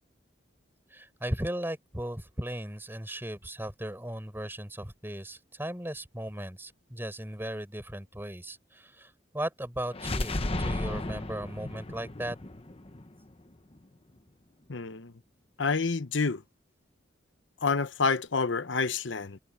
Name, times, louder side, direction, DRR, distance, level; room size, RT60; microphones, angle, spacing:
voice 1, 0.9-12.4, right 1 dB, 10° right, 5.5 m, -37 dB
sound 1, 9.9-13.8, left 2 dB, 30° left, 1.0 m, -34 dB
voice 2, 14.7-15.1 15.6-16.4 17.6-19.4, left 4 dB, 75° left, 0.9 m, -28 dB
head